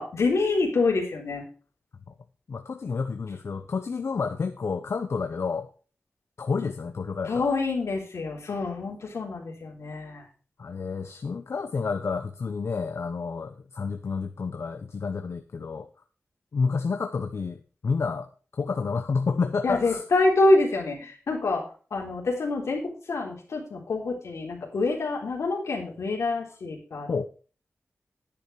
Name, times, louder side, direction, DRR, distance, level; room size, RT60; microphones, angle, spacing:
voice 1, 0.0-1.4 7.3-10.2 19.6-21.6 21.9-27.1, left 2 dB, 90° left, 3.6 m, -26 dB
voice 2, 2.5-5.7 6.4-7.5 10.6-15.9 16.5-18.3 18.6-20.0 27.1-27.2, left 5 dB, 70° left, 0.9 m, -29 dB
10.5 x 8.6 x 4.6 m
wide cardioid pair, 70°, 5 cm